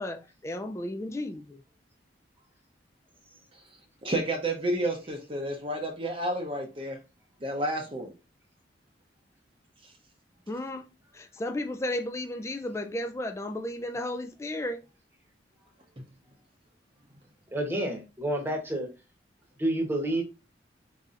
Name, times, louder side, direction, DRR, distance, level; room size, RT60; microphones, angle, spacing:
voice 1, 0.0-1.6 10.5-10.9 11.1-14.8, left 1 dB, 15° left, 0.3 m, -34 dB
voice 2, 4.0-7.0 7.4-8.1, right 1 dB, 30° right, 0.7 m, -30 dB
voice 3, 17.5-18.9 19.6-20.2, right 1 dB, 10° right, 1.0 m, -29 dB
4.1 x 4.1 x 2.5 m
head